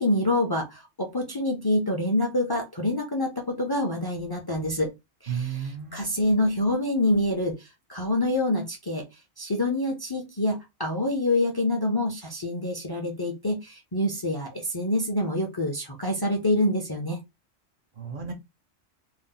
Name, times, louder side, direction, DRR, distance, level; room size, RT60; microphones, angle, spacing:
voice 1, 0.0-4.9 5.2-9.1 9.4-17.2, left 1 dB, 30° left, 0.5 m, -26 dB
voice 2, 5.3-6.2 18.0-18.3, right 7 dB, 55° right, 0.7 m, -33 dB
2.7 x 2.0 x 3.8 m
omnidirectional pair, 1.2 m